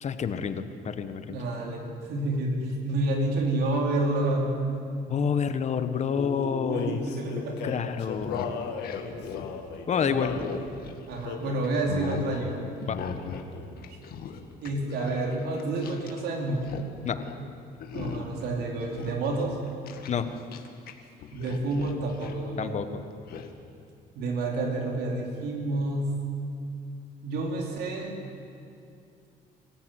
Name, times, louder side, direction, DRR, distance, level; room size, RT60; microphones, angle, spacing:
voice 1, 0.0-1.4 5.1-7.0 7.6-8.4 9.9-10.3 12.8-13.0 17.0-17.2 20.1-20.3 22.6-23.0, left 7 dB, 40° left, 10 dB, 1.4 m, -28 dB
voice 2, 1.3-4.5 6.7-7.6 10.0-10.5 11.1-12.6 13.9-14.0 14.6-16.8 17.9-19.6 21.3-22.9 24.1-26.1 27.2-28.2, right 2 dB, 70° right, 0 dB, 4.6 m, -29 dB
Male singing, 6.1-10.5 11.2-11.7 12.3-12.6 12.8-13.8, left 7 dB, 90° left, 2.2 m, -37 dB
sound 1, 8.2-11.3 11.6-12.3 12.9-13.5 13.8-16.2 16.5-16.9 17.2-17.4 17.8-18.4 18.8-20.9 21.2-22.4 23.3-23.5, left 7 dB, 65° left, 2.0 m, -39 dB
24.5 x 15.0 x 9.7 m, 2.5 s
cardioid pair, 110°, 17 cm